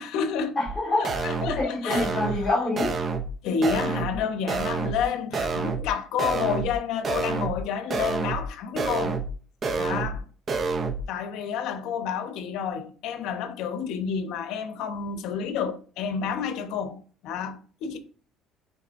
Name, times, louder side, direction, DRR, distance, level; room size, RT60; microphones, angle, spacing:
voice 1, 0.0-0.6 1.0-2.2 3.4-9.2 9.8-10.2 11.1-18.0, left 6 dB, 70° left, 1.1 m, -30 dB
voice 2, 0.6-1.2 1.4-3.0, left 2 dB, 20° left, 2.6 m, -26 dB
sound 1, 0.7-0.8 1.0-1.6 1.9-2.5 2.8-3.3 3.6-4.2 4.5-5.0 5.3-5.9 6.2-6.8 7.0-7.6 7.9-8.5 8.8-9.3 9.6-10.2 10.5-11.0, right 4 dB, 30° right, 0.7 m, -28 dB
10.5 x 4.3 x 2.6 m
cardioid pair, 160°, 0 cm